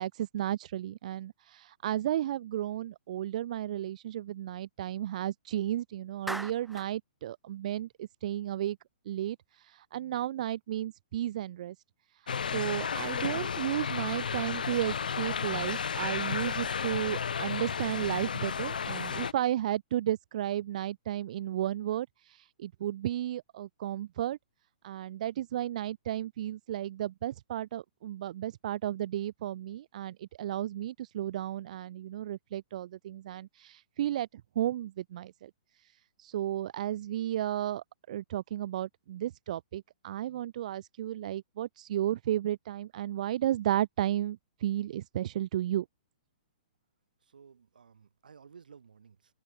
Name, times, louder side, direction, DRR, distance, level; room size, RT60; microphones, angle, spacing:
voice 1, 0.0-8.8 9.1-11.7 12.2-24.4 24.8-35.5 35.8-35.9 36.2-45.8, right 12 dB, 55° right, 1.0 m, -33 dB
Clapping, 6.3-6.9, right 1 dB, ahead, 1.9 m, -38 dB
sound 1, 12.3-19.3, left 6 dB, 80° left, 1.1 m, -33 dB
voice 2, 47.2-49.3, right 6 dB, 80° right, 7.3 m, -55 dB
open air
hypercardioid pair, 130°, 4 cm